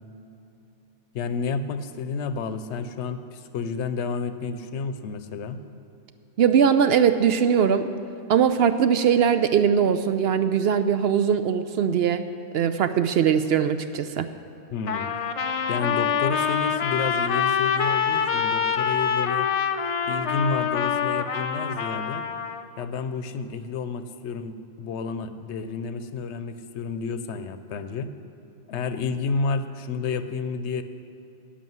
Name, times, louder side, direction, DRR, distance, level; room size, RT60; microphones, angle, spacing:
voice 1, 1.1-5.6 14.7-15.1 15.7-19.5 20.1-22.2 22.8-28.1 28.7-30.8, left 5 dB, 75° left, 11 dB, 0.9 m, -30 dB
voice 2, 6.4-7.9 8.3-12.2 12.5-14.3, right 7 dB, 65° right, 10 dB, 0.7 m, -21 dB
Trumpet, 14.9-22.7, left 7 dB, 55° left, 0.4 m, -25 dB
11.0 x 6.7 x 9.2 m, 2.9 s
omnidirectional pair, 1.2 m